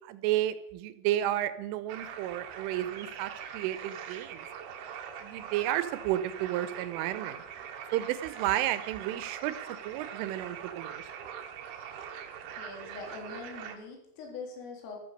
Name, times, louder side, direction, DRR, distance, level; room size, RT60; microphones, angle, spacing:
voice 1, 0.1-4.5 5.2-7.4 7.9-9.6 9.8-11.0, right 13 dB, 90° right, 14 dB, 3.4 m, -32 dB
sound 1, 1.9-13.8, right 8 dB, 65° right, 2.9 m, -43 dB
voice 2, 12.5-15.0, left 4 dB, 85° left, 2 dB, 5.9 m, -43 dB
14.0 x 13.5 x 6.6 m, 0.78 s
omnidirectional pair, 5.7 m